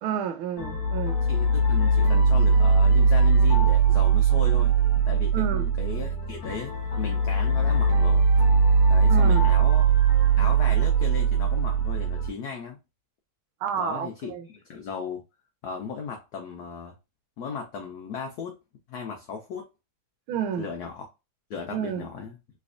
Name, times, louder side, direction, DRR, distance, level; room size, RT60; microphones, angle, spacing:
voice 1, 0.0-1.2 5.3-5.7 9.1-9.5 13.6-14.5 20.3-20.7 21.7-22.1, right 8 dB, 80° right, 1.5 m, -30 dB
sound 1, 0.6-12.3, right 4 dB, 60° left, 1.2 m, -20 dB
voice 2, 1.3-4.7 5.0-6.7 7.0-8.3 8.9-10.0 10.4-12.8 13.8-15.2 15.6-16.9 17.4-18.6 18.9-19.7 20.6-21.1 21.5-22.4, left 6 dB, 85° left, 0.8 m, -36 dB
3.4 x 3.2 x 2.4 m
omnidirectional pair, 2.3 m